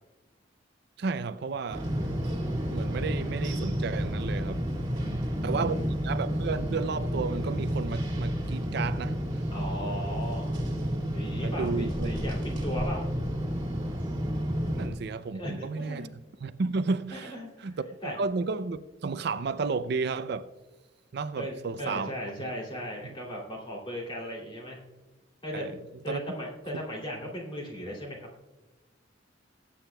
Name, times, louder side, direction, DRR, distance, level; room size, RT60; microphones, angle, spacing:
voice 1, 1.0-1.9 2.7-4.6 5.4-5.8 6.0-9.4 11.3-12.1 14.8-16.1 16.4-17.8 18.2-20.5 21.1-22.1 22.4-22.5 25.5-25.7 26.1-26.2, right 4 dB, 60° right, 0.4 m, -32 dB
sound 1, 1.7-14.9, equal, 25° right, 2.2 m, -31 dB
voice 2, 4.9-5.9 9.5-10.5 11.1-13.1 15.3-16.1 17.1-17.7 18.0-18.2 21.4-24.8 25.4-25.7 26.0-28.3, equal, 25° left, 2.8 m, -37 dB
20.5 x 8.5 x 2.3 m
head